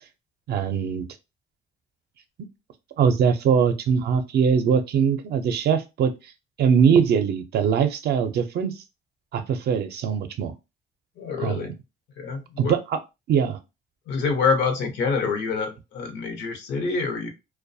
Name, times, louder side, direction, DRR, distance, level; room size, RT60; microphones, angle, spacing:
voice 1, 0.5-1.0 3.0-6.1 6.6-8.7 9.3-10.5 11.4-11.7 12.6-13.0 13.3-13.6, right 7 dB, 65° right, 8 dB, 0.5 m, -21 dB
voice 2, 11.2-11.7 12.2-12.8 14.1-17.3, left 4 dB, 85° left, 6 dB, 0.7 m, -26 dB
2.3 x 2.2 x 2.6 m, 0.25 s
cardioid pair, 125°, 18 cm